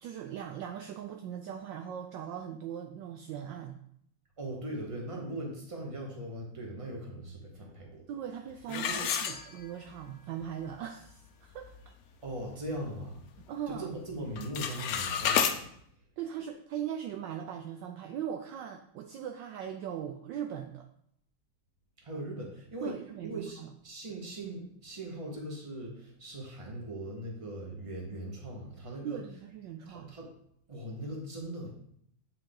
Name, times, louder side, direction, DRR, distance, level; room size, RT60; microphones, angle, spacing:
voice 1, 0.0-3.8 8.1-11.9 13.4-13.9 16.2-20.9 22.8-23.7 29.0-30.1, right 9 dB, 75° right, 5 dB, 1.1 m, -40 dB
voice 2, 4.4-8.0 8.7-9.1 12.2-13.2 13.7-15.6 22.0-23.0 23.2-29.2 29.8-30.3 30.7-31.8, right 1 dB, 20° right, -1 dB, 1.3 m, -40 dB
sound 1, 8.7-10.0 10.4-10.5 11.1-11.2 11.6-11.9 12.3-13.4 13.7-14.0 14.3-15.6, left 8 dB, 90° left, 0.7 m, -31 dB
8.8 x 4.7 x 3.8 m, 0.69 s
omnidirectional pair, 2.3 m